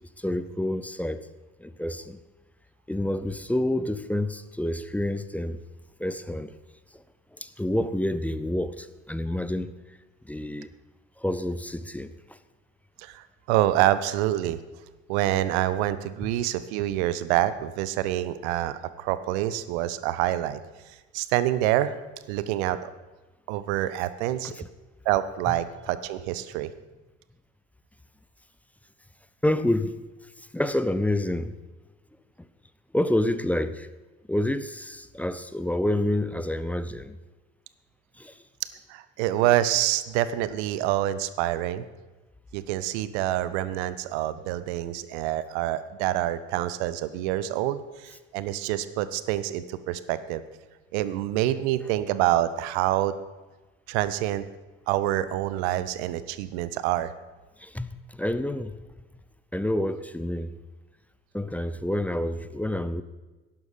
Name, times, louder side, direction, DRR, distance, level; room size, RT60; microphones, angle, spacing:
voice 1, 0.2-1.3 1.6-2.2 2.9-5.6 6.0-6.5 6.9-7.0 7.4-9.7 10.2-10.7 11.2-12.1 16.2-16.3 29.4-30.0 30.5-31.5 32.9-33.9 34.3-37.2 38.2-38.4 57.6-58.8 59.5-60.6 61.3-63.0, left 1 dB, 5° left, 13 dB, 0.5 m, -28 dB
voice 2, 13.0-14.6 15.1-20.6 20.9-21.9 22.3-22.9 23.5-24.5 25.0-26.7 38.9-41.9 42.5-50.4 50.9-53.1 53.9-54.4 54.9-57.1, right 13 dB, 60° right, 14 dB, 0.8 m, -26 dB
11.5 x 11.0 x 5.1 m, 1.2 s
figure-of-eight pair, 60°, 38 cm